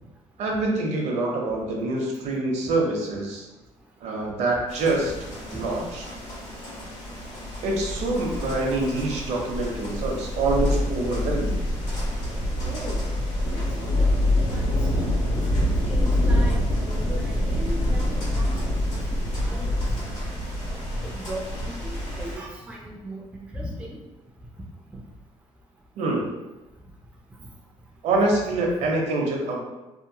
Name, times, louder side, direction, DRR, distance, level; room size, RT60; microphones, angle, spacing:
voice 1, 0.4-3.4 4.0-5.1 5.5-6.0 7.6-11.6 26.0-26.3 28.0-29.6, right 2 dB, 60° right, 0 dB, 0.6 m, -25 dB
sound 1, 4.7-22.4, left 1 dB, 85° left, 1.4 m, -26 dB
voice 2, 12.7-13.0 13.6-14.1 14.5-14.6 15.8-18.5 19.4-19.7 20.7-20.8 21.0-23.2 23.5-23.9, right 1 dB, 10° right, -2 dB, 0.3 m, -37 dB
2.8 x 2.1 x 2.6 m, 1.1 s
cardioid pair, 150°, 13 cm